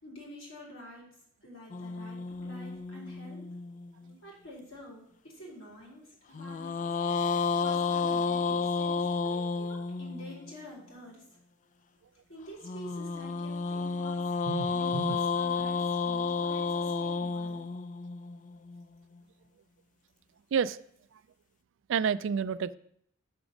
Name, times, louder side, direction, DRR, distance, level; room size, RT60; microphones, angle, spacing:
voice 1, 0.0-1.1 1.4-3.5 4.2-6.9 7.6-11.2 12.3-14.3 14.7-17.6, left 1 dB, 80° left, -5 dB, 3.6 m, -48 dB
sound 1, 1.7-4.1 6.3-10.5 12.6-18.8, left 4 dB, 40° left, 0.3 m, -31 dB
voice 2, 14.5-15.2 20.5-20.8 21.9-22.8, right 7 dB, 65° right, 16 dB, 0.3 m, -30 dB
6.1 x 5.9 x 6.4 m, 0.69 s
head